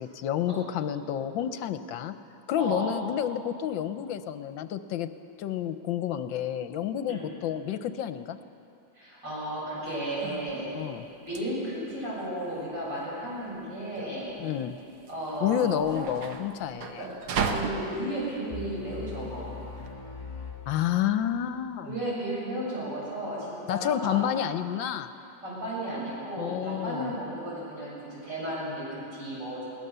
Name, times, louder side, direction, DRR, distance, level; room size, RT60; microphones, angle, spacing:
voice 1, 0.0-2.2 2.5-5.1 5.4-8.4 10.7-11.1 14.4-14.8 15.4-17.0 20.7-21.9 23.7-25.1 26.4-27.1, left 10 dB, 75° left, 11 dB, 1.3 m, -29 dB
voice 2, 2.5-2.9 7.1-7.3 8.9-10.8 11.3-14.4 15.1-16.1 17.0-17.1 17.4-19.6 21.8-24.3 25.4-29.6, right 1 dB, 60° right, -6 dB, 7.9 m, -34 dB
sound 1, 9.9-19.9, right 5 dB, 85° right, 2.0 m, -37 dB
sound 2, 18.5-21.4, left 4 dB, 20° left, 1.9 m, -41 dB
21.5 x 18.0 x 6.8 m, 2.7 s
omnidirectional pair, 2.2 m